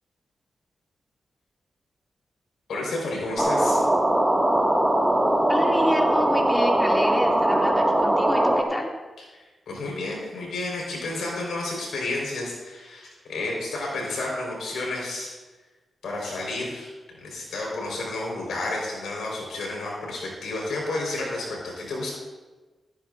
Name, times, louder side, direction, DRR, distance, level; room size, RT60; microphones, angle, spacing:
voice 1, 2.7-3.9 9.3-15.3 16.0-16.9 17.2-22.1, left 2 dB, 90° left, -2 dB, 4.3 m, -31 dB
sound 1, 3.4-8.6, right 1 dB, 15° right, 1.8 m, -21 dB
voice 2, 5.5-8.9, equal, 15° left, -1 dB, 2.4 m, -29 dB
16.0 x 13.5 x 2.6 m, 1.2 s
cardioid pair, 65°, 0 cm